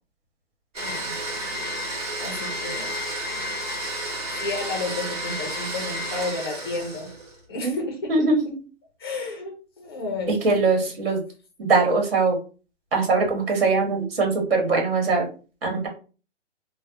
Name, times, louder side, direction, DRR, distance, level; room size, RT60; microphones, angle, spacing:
Domestic sounds home sounds, 0.7-7.4, equal, 35° right, 1.4 m, -31 dB
voice 1, 0.8-1.5 2.2-2.9 4.4-7.1 7.5-8.4 9.0-10.4, left 3 dB, 20° left, 0.5 m, -32 dB
voice 2, 8.1-8.6 10.3-11.2 11.6-12.4 12.9-15.3 15.6-15.9, right 3 dB, 55° right, 1.6 m, -22 dB
3.2 x 2.1 x 2.8 m
hypercardioid pair, 165°, 36 cm